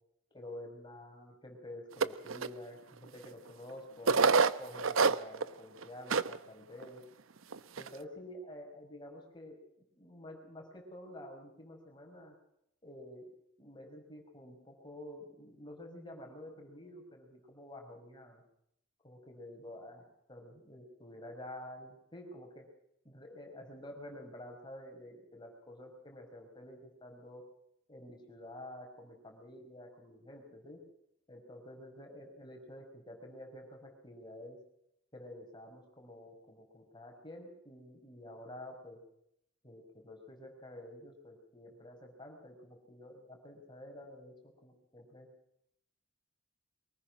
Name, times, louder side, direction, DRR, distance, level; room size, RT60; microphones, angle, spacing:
voice 1, 0.3-4.2 4.6-7.0 7.8-9.6 10.0-12.3 12.8-13.3 13.6-18.4 19.0-20.0 20.3-22.7 23.0-27.4 27.9-30.8 31.3-34.6 35.1-39.0 39.6-44.3 44.6-45.3, left 1 dB, 25° left, 2 dB, 5.6 m, -49 dB
sound 1, 2.0-2.5 3.2-3.3 4.1-5.5 5.8-5.9 6.1-6.4 6.8-6.9 7.5-7.9, right 4 dB, 90° right, 0.8 m, -26 dB
24.0 x 19.5 x 6.1 m, 0.77 s
head